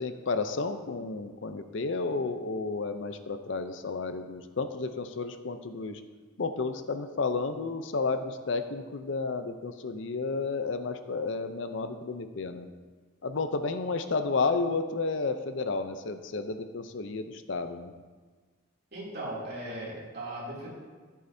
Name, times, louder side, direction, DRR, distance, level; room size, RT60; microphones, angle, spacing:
voice 1, 0.0-6.0 6.4-12.7 13.2-17.9, left 4 dB, 65° left, 9 dB, 0.5 m, -32 dB
voice 2, 18.9-20.7, right 1 dB, 50° right, -5 dB, 2.8 m, -38 dB
14.0 x 8.4 x 2.7 m, 1.4 s
head